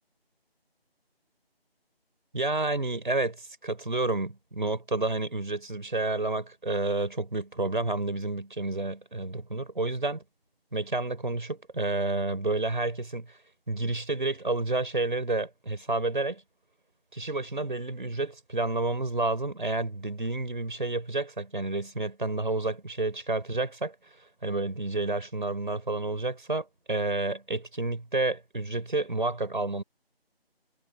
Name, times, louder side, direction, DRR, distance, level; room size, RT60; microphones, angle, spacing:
voice 1, 2.3-10.2 10.7-13.4 13.7-16.4 17.1-23.9 24.4-29.8, right 2 dB, 55° right, 5.5 m, -30 dB
figure-of-eight pair, 160°, 31 cm